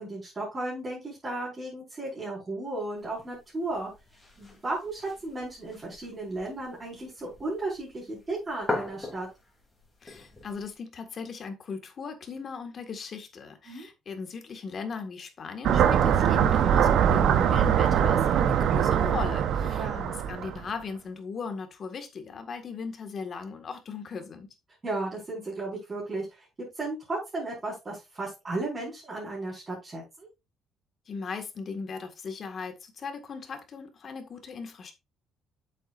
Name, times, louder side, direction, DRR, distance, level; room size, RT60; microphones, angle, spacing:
voice 1, 0.0-3.9 4.4-9.3 13.7-13.9 19.8-20.1 24.8-30.3, right 2 dB, 25° right, 4.6 m, -35 dB
sound 1, 3.0-10.8, left 3 dB, 15° left, 3.0 m, -41 dB
voice 2, 10.0-24.5 31.1-34.9, left 5 dB, 40° left, 1.7 m, -38 dB
sound 2, 15.6-20.6, right 9 dB, 65° right, 0.8 m, -22 dB
8.3 x 7.6 x 2.5 m
cardioid pair, 130°, 0 cm